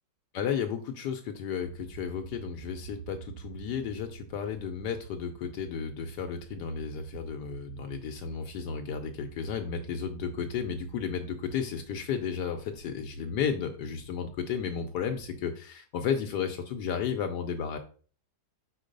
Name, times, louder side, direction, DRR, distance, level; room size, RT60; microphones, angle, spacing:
voice 1, 0.3-17.8, left 7 dB, 75° left, 5 dB, 1.2 m, -33 dB
innercity train, 1.6-15.5, right 8 dB, 85° right, 1.3 m, -47 dB
4.6 x 4.5 x 5.1 m, 0.42 s
omnidirectional pair, 1.9 m